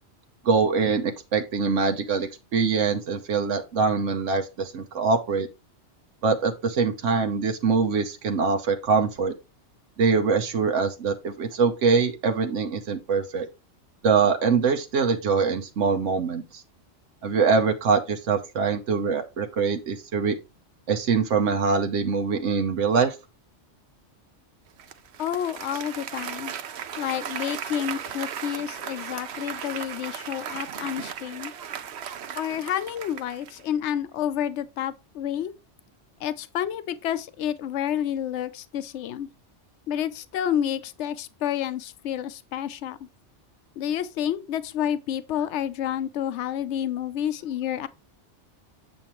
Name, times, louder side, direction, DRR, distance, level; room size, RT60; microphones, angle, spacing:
voice 1, 0.4-5.5 6.2-9.3 10.0-13.5 14.0-16.6 17.2-20.4 20.9-23.2, right 5 dB, 90° right, 1.2 m, -23 dB
Applause, 24.8-33.7, right 8 dB, 65° right, 0.9 m, -36 dB
voice 2, 25.2-26.5 27.0-31.5 32.3-35.5 36.2-39.3 39.9-43.0 43.8-47.9, left 10 dB, 75° left, 0.9 m, -29 dB
7.6 x 7.1 x 3.0 m
omnidirectional pair, 1.2 m